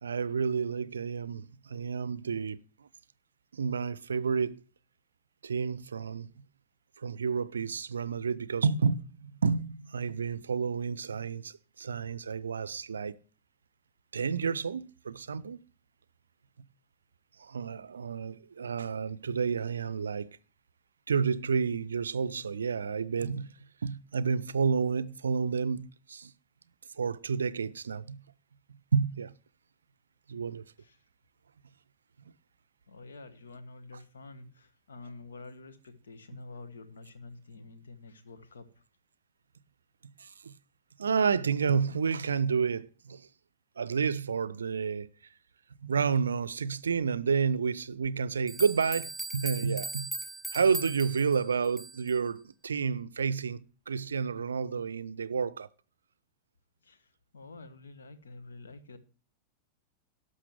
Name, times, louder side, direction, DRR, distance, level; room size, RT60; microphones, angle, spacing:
voice 1, 0.0-2.9 3.5-4.6 5.4-6.3 7.0-13.2 14.1-15.6 17.4-20.4 21.1-23.5 23.8-26.3 27.0-28.2 28.9-29.3 30.3-30.6 40.2-40.5 41.0-43.3 43.8-45.1 45.8-50.1 50.5-55.7, right 5 dB, 70° right, 0.5 m, -30 dB
voice 2, 32.9-38.7 56.8-59.0, left 3 dB, 70° left, 1.4 m, -48 dB
sound 1, 48.5-52.2, right 2 dB, 5° right, 0.5 m, -39 dB
12.0 x 6.3 x 7.7 m
figure-of-eight pair, 90°, 0 cm